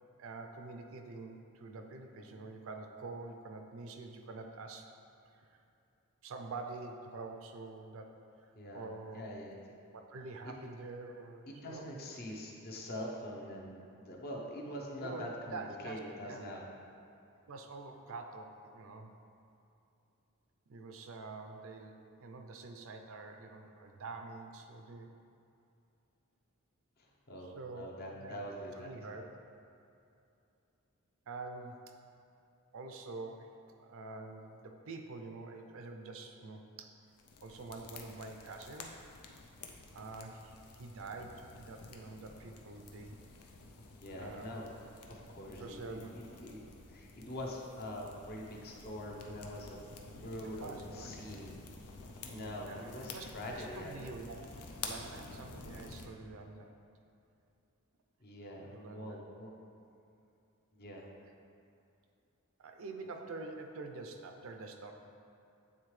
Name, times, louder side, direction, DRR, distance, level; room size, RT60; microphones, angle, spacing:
voice 1, 0.2-4.9 5.3-5.6 6.2-8.2 8.7-9.3 10.1-11.8 15.0-16.4 17.5-19.1 20.7-25.1 27.4-28.4 28.8-29.2 31.3-31.8 32.7-36.9 37.4-38.9 39.9-43.1 44.2-44.5 45.5-46.2 50.6-51.1 52.7-53.2 53.5-54.4 54.8-56.7 58.6-59.2 62.6-64.9, right 3 dB, 60° right, 4 dB, 0.5 m, -46 dB
voice 2, 8.5-8.9 9.1-9.6 10.4-10.5 11.5-16.7 27.0-28.9 43.9-44.7 45.1-46.6 46.9-49.9 50.2-51.5 52.3-54.0 58.2-59.5 60.7-61.1, equal, 45° left, -1 dB, 0.7 m, -44 dB
sound 1, 37.1-56.1, left 3 dB, 90° left, 0.6 m, -50 dB
8.7 x 3.5 x 3.2 m, 2.6 s
head